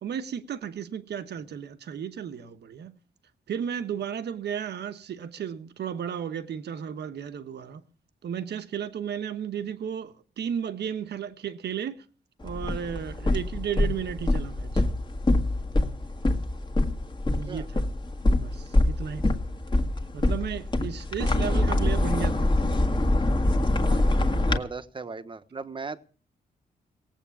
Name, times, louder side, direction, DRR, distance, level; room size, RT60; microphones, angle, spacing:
voice 1, 0.0-2.9 3.5-7.8 8.2-12.0 12.4-14.9 17.3-17.8 18.2-19.4 20.1-22.6 23.8-24.0, right 8 dB, 75° right, 1.1 m, -34 dB
sound 1, 12.4-24.6, left 1 dB, 25° left, 1.7 m, -25 dB
voice 2, 24.3-26.0, right 4 dB, 30° right, 1.1 m, -37 dB
17.5 x 8.3 x 7.1 m
cardioid pair, 100°, 18 cm